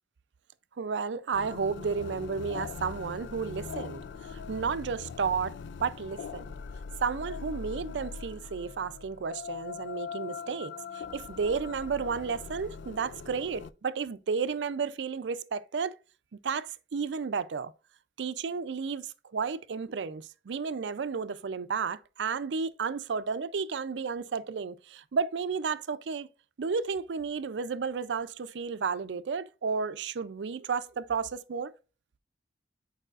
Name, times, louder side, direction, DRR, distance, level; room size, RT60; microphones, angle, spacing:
voice 1, 0.8-6.5 7.0-16.0 16.4-17.7 18.2-26.3 26.6-31.7, right 5 dB, 85° right, 0.4 m, -32 dB
sound 1, 1.3-13.7, left 5 dB, 75° left, 0.3 m, -41 dB
9.0 x 4.8 x 2.5 m
head